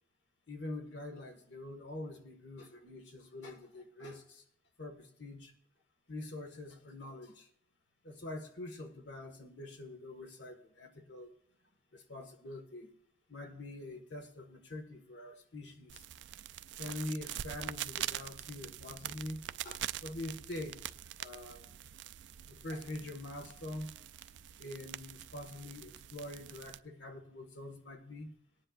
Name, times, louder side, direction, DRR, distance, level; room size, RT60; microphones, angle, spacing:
voice 1, 0.5-4.4 4.8-5.6 6.1-7.5 8.0-11.3 11.9-12.9 13.3-16.0 16.8-20.8 21.2-21.8 22.5-23.9 24.6-28.4, left 1 dB, 75° left, 4 dB, 1.7 m, -45 dB
sound 1, 15.9-26.8, right 11 dB, 75° right, 0.4 m, -44 dB
19.0 x 10.0 x 2.5 m, 0.69 s
head